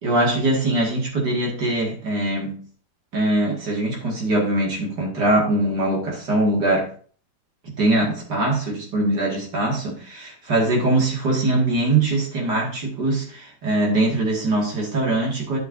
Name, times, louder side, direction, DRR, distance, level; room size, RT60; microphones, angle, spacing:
voice 1, 0.0-2.6 3.1-6.9 7.8-15.6, right 2 dB, 55° right, -1 dB, 2.7 m, -22 dB
11.0 x 6.3 x 2.7 m, 0.43 s
omnidirectional pair, 2.2 m